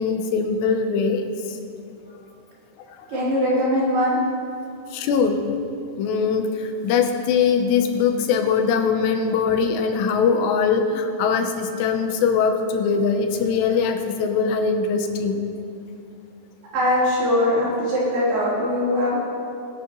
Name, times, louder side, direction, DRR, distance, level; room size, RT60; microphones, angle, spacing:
voice 1, 0.0-1.6 4.9-5.6 6.0-15.4, left 5 dB, 85° left, 5 dB, 3.1 m, -21 dB
voice 2, 3.1-4.2 16.7-19.2, left 1 dB, 70° right, -8 dB, 5.7 m, -21 dB
20.5 x 10.5 x 3.1 m, 2.5 s
omnidirectional pair, 4.8 m